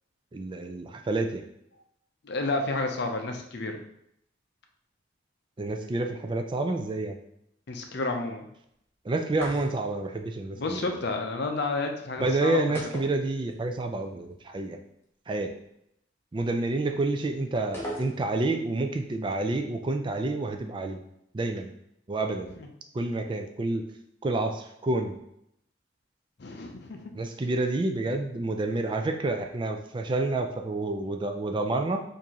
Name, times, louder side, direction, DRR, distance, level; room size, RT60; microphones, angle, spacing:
voice 1, 0.3-1.4 5.6-7.2 9.1-10.9 12.2-14.8 15.3-15.5 16.3-21.0 21.3-21.7 22.1-22.6 22.9-23.8 24.2-25.2 27.1-32.0, right 2 dB, 25° right, 5 dB, 0.3 m, -29 dB
voice 2, 2.2-3.8 7.7-8.5 10.5-12.6 22.6-22.7 26.4-27.1, left 3 dB, 60° left, 4 dB, 0.5 m, -31 dB
sound 1, 9.3-10.1 12.8-13.8 14.1-14.2 17.7-18.5, equal, 15° left, 0.7 m, -39 dB
4.6 x 2.6 x 2.8 m, 0.77 s
head